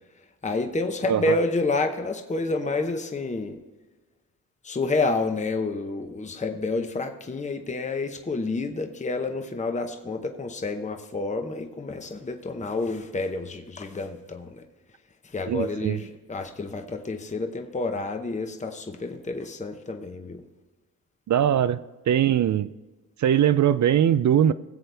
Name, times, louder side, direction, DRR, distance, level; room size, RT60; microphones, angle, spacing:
voice 1, 0.4-3.6 4.6-14.6 15.2-20.4, left 3 dB, 20° left, 6 dB, 0.8 m, -29 dB
voice 2, 15.5-16.0 21.3-21.8 22.1-22.7 23.2-24.5, right 10 dB, 55° right, 14 dB, 0.4 m, -21 dB
19.0 x 7.7 x 3.4 m, 1.2 s
cardioid pair, 105°, 35 cm